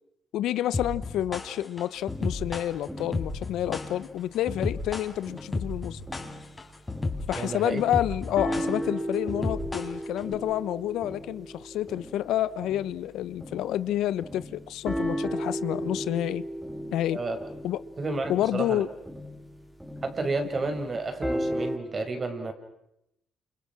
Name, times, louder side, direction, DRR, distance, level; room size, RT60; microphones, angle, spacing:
voice 1, 0.3-6.0 7.3-16.4 16.9-17.2 17.6-17.8 18.3-18.9, left 12 dB, 85° left, 1.0 m, -29 dB
sound 1, 0.7-10.3, left 3 dB, 20° left, 4.6 m, -33 dB
sound 2, 2.1-5.0 5.3-13.9 14.2-21.8, equal, 5° right, 3.4 m, -36 dB
voice 2, 7.4-7.8 17.1-17.4 18.0-18.8 20.0-22.5, right 3 dB, 35° right, 5.8 m, -31 dB
29.5 x 28.5 x 6.1 m
cardioid pair, 90°, 0 cm